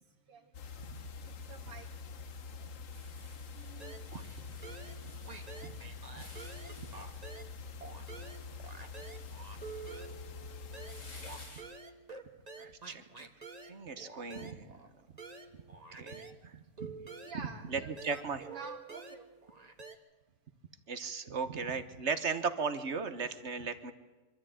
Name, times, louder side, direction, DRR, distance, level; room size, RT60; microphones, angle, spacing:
voice 1, 0.3-0.6 1.5-1.9 3.2-4.0 17.2-19.3, right 5 dB, 80° right, -1 dB, 2.7 m, -49 dB
sound 1, 0.5-11.5, left 4 dB, 50° left, 1.0 m, -46 dB
sound 2, 2.9-11.6, left 2 dB, 70° left, 5.4 m, -57 dB
sound 3, 3.8-4.4 4.6-7.5 7.8-16.4 16.8-19.9, right 4 dB, 20° right, 1.2 m, -49 dB
voice 2, 4.1-4.4 12.6-13.3 13.6-14.8 15.9-16.9 17.3-17.4 17.7-18.4 20.9-23.9, right 5 dB, 45° right, 11 dB, 0.9 m, -37 dB
24.5 x 14.0 x 8.9 m, 1.3 s
omnidirectional pair, 2.4 m